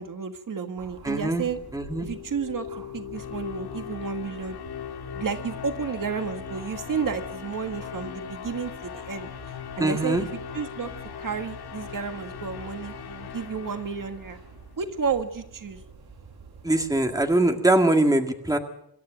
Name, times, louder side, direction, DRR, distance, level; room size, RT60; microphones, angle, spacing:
voice 1, 0.0-1.6 2.0-2.7 2.9-4.6 5.1-9.3 9.8-10.3 10.5-10.9 11.2-14.4 14.8-15.8, right 6 dB, 60° right, 7 dB, 1.7 m, -31 dB
sound 1, 0.8-17.5, right 4 dB, 90° right, 7.9 m, -49 dB
voice 2, 1.0-1.5 1.7-2.1 9.8-10.3 16.6-18.6, right 2 dB, 10° right, 5 dB, 1.9 m, -22 dB
sound 2, 1.6-14.7, left 8 dB, 90° left, 1.8 m, -39 dB
25.5 x 12.5 x 8.9 m, 0.76 s
wide cardioid pair, 160°, 37 cm